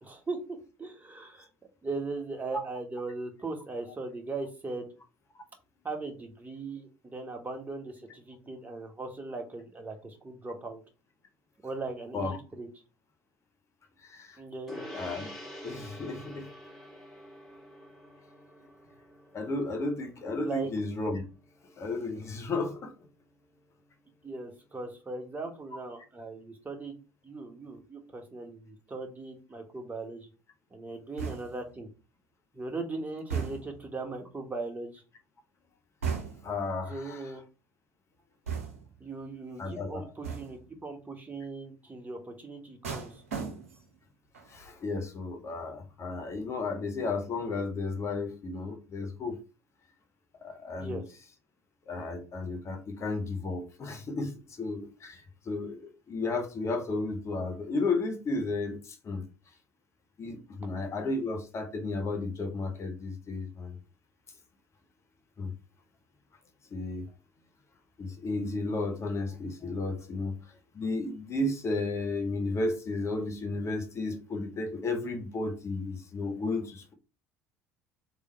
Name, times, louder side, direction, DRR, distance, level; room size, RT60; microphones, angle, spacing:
voice 1, 0.0-1.5 1.8-4.9 5.8-10.8 11.6-12.7 14.4-14.8 20.4-20.7 24.2-26.9 27.2-30.3 30.7-31.9 32.5-35.0 36.9-37.4 39.0-43.2 50.8-51.0, right 3 dB, 20° right, 1.5 m, -39 dB
voice 2, 14.1-14.4 14.9-15.3 15.6-16.5 19.3-21.2 21.8-22.9 36.4-37.3 39.6-40.1 44.5-49.4 50.4-51.0 51.9-59.2 60.2-63.8 65.4-65.5 66.7-67.0 68.0-70.4 70.7-76.9, left 3 dB, 40° left, 1.1 m, -33 dB
Gong, 14.7-24.4, equal, ahead, 2.3 m, -49 dB
sound 1, 31.2-31.7 33.3-33.9 36.0-36.6 38.5-39.0 40.2-40.7 42.8-44.0 44.3-44.7, right 6 dB, 80° right, 0.8 m, -36 dB
3.5 x 3.1 x 4.4 m
figure-of-eight pair, 60°, 8 cm